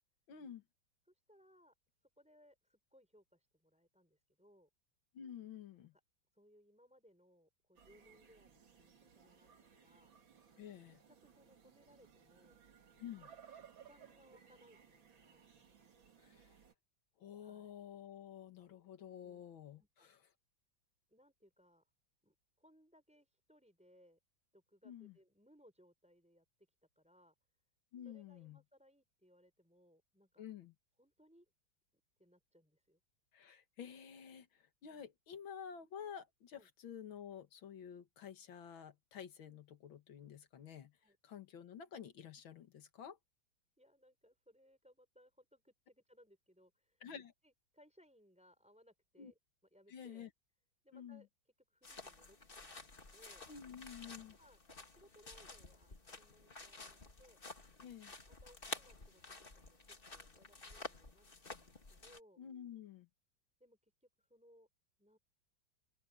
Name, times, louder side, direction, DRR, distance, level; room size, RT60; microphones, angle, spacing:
voice 1, 0.3-0.6 5.1-5.9 10.6-11.0 13.0-13.3 16.2-16.5 17.2-20.2 24.8-25.2 27.9-28.6 30.4-30.7 33.3-41.0 41.2-43.2 47.0-47.3 49.2-49.3 49.9-50.3 50.9-51.2 53.5-54.4 57.8-58.1 62.4-63.1, left 8 dB, 85° left, 2.3 m, -51 dB
voice 2, 1.1-1.7 2.0-4.7 6.3-10.1 10.8-10.9 11.2-12.7 13.0-13.2 13.5-15.5 17.4-17.7 19.8-20.1 21.1-21.9 22.2-24.2 24.5-26.5 27.0-27.3 28.0-30.4 31.0-31.5 32.2-33.0 36.5-36.7 41.0-41.2 43.8-47.0 47.4-49.4 49.7-50.3 50.8-51.3 51.7-53.5 54.4-54.6 54.9-57.4 58.3-62.4 63.6-64.7 65.0-65.2, equal, 5° right, 5.4 m, -67 dB
sound 1, 7.8-16.7, right 7 dB, 80° right, 3.0 m, -62 dB
sound 2, 51.8-62.2, left 3 dB, 30° left, 2.0 m, -52 dB
open air
omnidirectional pair, 2.1 m